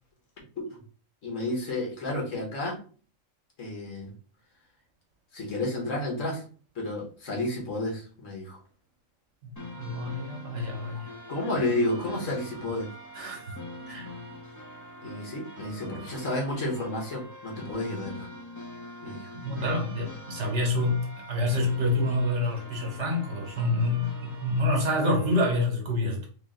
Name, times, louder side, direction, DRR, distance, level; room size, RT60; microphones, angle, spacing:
voice 1, 1.2-2.8 3.6-4.1 5.3-6.4 6.7-8.6 11.3-12.9 15.0-18.3 19.0-19.3, left 1 dB, 75° left, 1.6 m, -31 dB
voice 2, 9.4-11.1 13.2-13.6 13.9-14.1 19.4-26.3, left 1 dB, 65° right, 1.3 m, -27 dB
sound 1, 9.6-25.6, equal, 20° left, 0.7 m, -44 dB
3.6 x 2.5 x 3.7 m
omnidirectional pair, 1.3 m